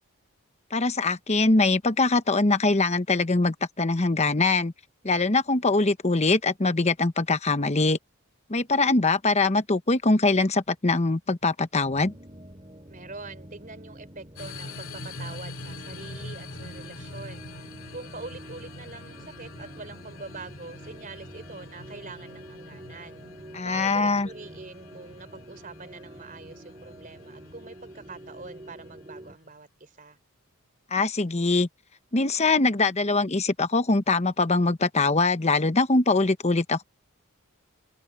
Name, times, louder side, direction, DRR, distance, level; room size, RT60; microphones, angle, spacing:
voice 1, 0.7-4.7 5.0-8.0 8.5-12.1 23.5-24.3 30.9-31.7 32.1-36.8, left 3 dB, 30° left, 1.0 m, -23 dB
sound 1, 11.9-29.4, right 1 dB, 20° right, 3.2 m, -47 dB
voice 2, 12.9-17.4 17.9-23.2 23.6-30.2, right 3 dB, 40° right, 3.5 m, -44 dB
sound 2, 14.4-29.4, left 2 dB, 65° left, 2.4 m, -44 dB
head